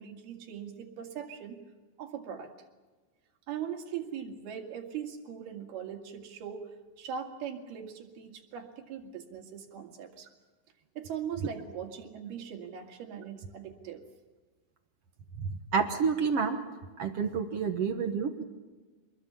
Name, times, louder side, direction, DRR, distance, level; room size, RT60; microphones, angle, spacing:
voice 1, 0.0-1.6 2.0-2.5 3.5-6.7 7.0-10.3 11.0-14.0, right 8 dB, 80° right, 4 dB, 4.1 m, -40 dB
voice 2, 15.4-16.6 17.0-18.5, right 6 dB, 60° right, 6 dB, 1.6 m, -29 dB
26.5 x 21.5 x 7.2 m, 1.3 s
omnidirectional pair, 4.4 m